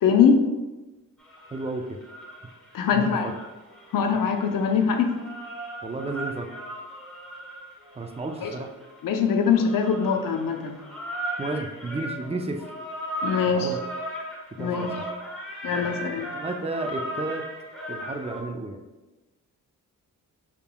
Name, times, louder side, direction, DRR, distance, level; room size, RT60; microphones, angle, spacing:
voice 1, 0.0-0.4 2.7-3.3 3.9-5.1 8.4-8.5 9.0-10.8 13.2-13.7 14.6-14.9 15.6-16.3, left 6 dB, 75° left, 5 dB, 0.6 m, -22 dB
sound 1, 1.2-2.7 3.1-18.4, equal, ahead, 1.2 m, -37 dB
voice 2, 1.5-2.0 2.9-3.4 5.8-6.5 8.0-8.7 11.4-12.7 13.4-13.8 14.6-15.1 16.3-17.4 17.9-18.8, right 2 dB, 20° right, 5 dB, 0.4 m, -32 dB
5.7 x 3.6 x 2.2 m, 1.1 s
cardioid pair, 100°, 34 cm